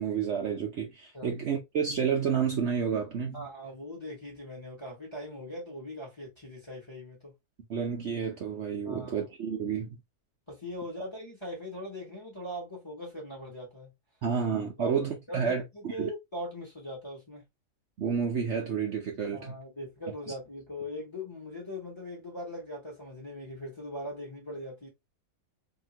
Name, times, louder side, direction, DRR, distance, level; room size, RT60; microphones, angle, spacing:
voice 1, 0.0-3.5 7.7-9.9 14.2-16.1 18.0-19.6, right 7 dB, 55° right, 0.8 m, -30 dB
voice 2, 3.3-7.3 8.8-9.3 10.5-13.9 14.8-17.4 19.3-24.9, left 1 dB, 20° left, 1.0 m, -40 dB
2.9 x 2.7 x 2.8 m
omnidirectional pair, 1.7 m